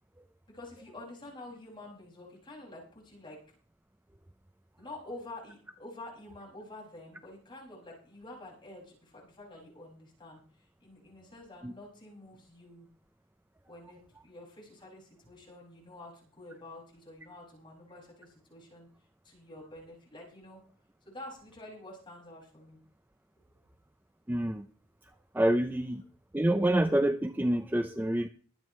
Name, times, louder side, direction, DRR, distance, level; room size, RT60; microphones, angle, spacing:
voice 1, 0.5-3.4 4.8-12.9 13.7-18.9 19.2-20.6 21.0-22.8 25.1-25.2, left 2 dB, 25° left, -3 dB, 6.2 m, -48 dB
voice 2, 24.3-24.6 25.3-26.0 26.3-28.3, right 1 dB, 10° right, 9 dB, 0.5 m, -27 dB
23.0 x 9.1 x 3.2 m, 0.43 s
head